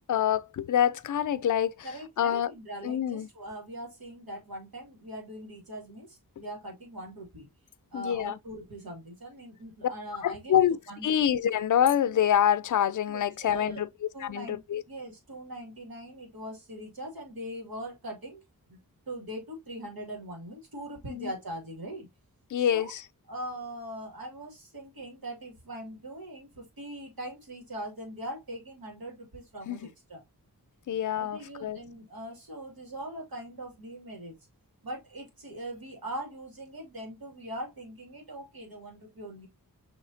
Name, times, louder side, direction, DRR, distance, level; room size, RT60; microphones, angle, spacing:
voice 1, 0.1-1.9 2.2-2.5 2.8-3.3 7.9-8.4 10.2-10.8 11.0-13.9 14.2-14.8 21.1-21.3 22.5-23.0 29.7-29.8 30.9-31.8, left 9 dB, 60° left, 0.5 m, -26 dB
voice 2, 1.8-7.5 7.9-10.6 10.9-11.1 13.1-13.8 14.1-14.6 14.9-18.4 18.7-18.8 19.1-22.1 22.6-22.9 23.3-30.2 31.1-34.3 34.8-39.5, right 1 dB, 80° right, 2.2 m, -41 dB
6.3 x 3.2 x 2.5 m
wide cardioid pair, 60°, 35 cm